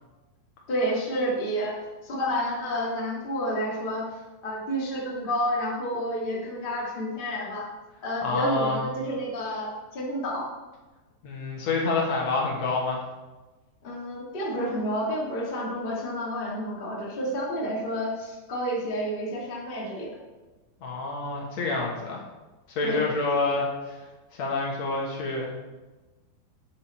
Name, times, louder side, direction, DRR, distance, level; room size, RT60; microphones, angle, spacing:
voice 1, 0.7-4.0 4.4-7.7 8.0-10.5 13.8-20.1 22.8-23.0, equal, 45° left, -4 dB, 0.7 m, -30 dB
voice 2, 8.2-8.8 11.2-13.0 20.8-22.2 22.7-24.0 24.3-25.5, left 3 dB, 60° left, -2 dB, 2.0 m, -27 dB
8.8 x 6.3 x 4.4 m, 1.2 s
omnidirectional pair, 4.7 m